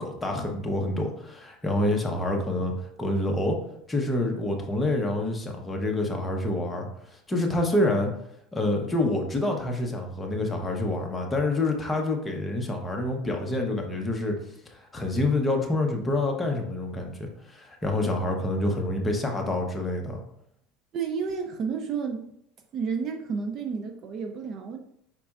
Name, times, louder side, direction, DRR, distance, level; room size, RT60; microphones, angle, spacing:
voice 1, 0.0-3.6 3.9-8.1 8.5-14.4 14.7-20.2, left 1 dB, 10° left, 1 dB, 0.8 m, -27 dB
voice 2, 20.9-22.3 22.7-24.8, right 5 dB, 35° right, 5 dB, 0.5 m, -31 dB
5.2 x 4.3 x 2.4 m, 0.72 s
supercardioid pair, 145°, 0 cm